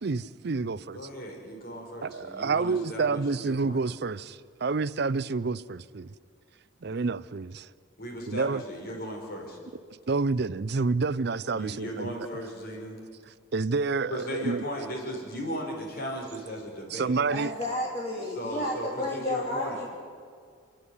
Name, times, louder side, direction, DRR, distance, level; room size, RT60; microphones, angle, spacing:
voice 1, 0.0-1.0 2.0-6.1 6.8-7.7 8.3-8.6 10.1-12.1 13.5-14.7 16.9-17.5, right 4 dB, 55° right, 0.5 m, -28 dB
voice 2, 0.9-3.8 6.8-6.9 8.0-9.6 11.5-13.0 14.1-17.2 17.6-17.7 18.3-19.8, equal, 50° left, 5.0 m, -37 dB
voice 3, 17.3-19.9, left 1 dB, 35° left, 2.9 m, -31 dB
29.0 x 10.5 x 9.6 m
head